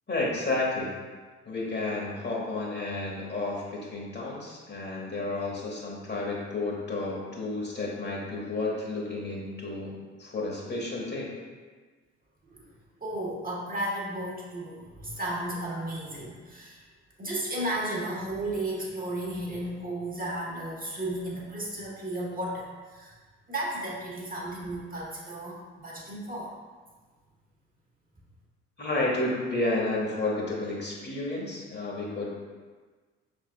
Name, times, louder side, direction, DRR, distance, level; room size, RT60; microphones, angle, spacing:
voice 1, 0.1-0.9 1.4-9.9 10.2-11.3 28.8-32.4, left 2 dB, 30° left, -3 dB, 1.3 m, -31 dB
voice 2, 13.0-16.8 17.2-23.2 23.5-26.5, right 1 dB, 25° right, -3 dB, 1.1 m, -34 dB
5.4 x 3.5 x 2.3 m, 1.4 s
hypercardioid pair, 50°, 34 cm